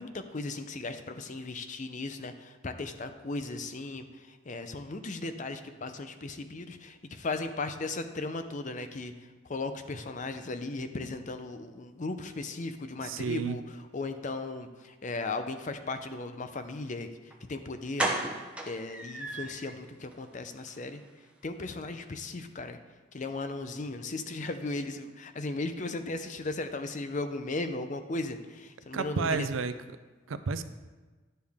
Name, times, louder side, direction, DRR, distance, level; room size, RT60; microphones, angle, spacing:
voice 1, 0.0-9.1 9.5-17.1 17.5-18.4 18.7-21.0 21.4-22.8 23.1-29.5, left 3 dB, 40° left, 8 dB, 0.6 m, -36 dB
voice 2, 13.0-13.6 28.9-29.7 30.3-30.6, right 4 dB, 75° right, 11 dB, 0.5 m, -30 dB
sound 1, 17.3-17.4 18.0-19.7 20.1-20.2 20.6-20.7 21.0-21.1, right 1 dB, 5° right, 0.8 m, -33 dB
11.0 x 6.8 x 3.5 m, 1.3 s
head